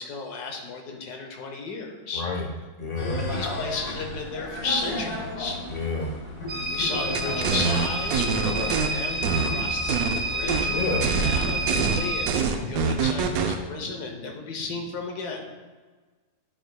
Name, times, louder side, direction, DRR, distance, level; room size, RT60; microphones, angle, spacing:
voice 1, 0.0-2.2 3.2-5.6 6.7-15.5, left 4 dB, 90° left, 2 dB, 1.4 m, -34 dB
voice 2, 2.1-2.5 2.8-3.2 5.7-6.1 8.4-8.7 10.7-11.0 12.5-12.8, left 3 dB, 45° left, 0 dB, 0.5 m, -30 dB
sound 1, 3.0-11.9, left 1 dB, 65° left, 1.6 m, -34 dB
sound 2, 6.5-12.3, right 2 dB, 45° right, 0.6 m, -29 dB
sound 3, 7.1-8.9 9.2-10.2 10.5-10.7 11.0-13.6, right 6 dB, 75° right, 1.0 m, -25 dB
10.0 x 4.9 x 2.2 m, 1.4 s
omnidirectional pair, 1.6 m